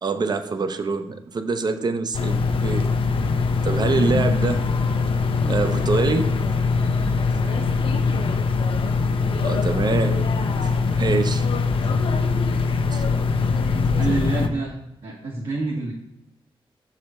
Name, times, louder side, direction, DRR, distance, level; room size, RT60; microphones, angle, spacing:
voice 1, 0.0-2.9 3.6-4.7 5.4-6.5 9.4-11.5 11.8-11.9 12.9-13.0, right 4 dB, 50° right, 9 dB, 0.6 m, -25 dB
sound 1, 2.1-14.5, left 4 dB, 70° left, 0.6 m, -22 dB
voice 2, 12.8-13.2 13.9-15.9, right 3 dB, 75° right, -5 dB, 1.4 m, -29 dB
6.6 x 4.9 x 4.2 m, 0.86 s
cardioid pair, 80°, 9 cm